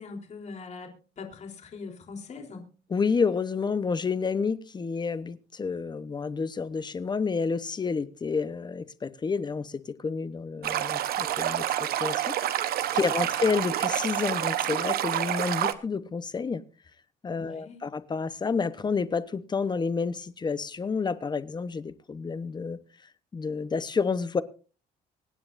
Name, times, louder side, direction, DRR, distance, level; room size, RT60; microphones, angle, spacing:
voice 1, 0.0-2.6 12.9-13.1 17.3-17.9, left 4 dB, 40° left, 3.8 m, -42 dB
voice 2, 2.9-11.6 12.0-12.3 12.6-16.6 17.2-22.8 23.3-24.4, left 5 dB, 25° left, 1.0 m, -29 dB
Stream, 10.6-15.7, right 11 dB, 65° right, 1.1 m, -28 dB
25.0 x 9.6 x 2.6 m
cardioid pair, 110°, 17 cm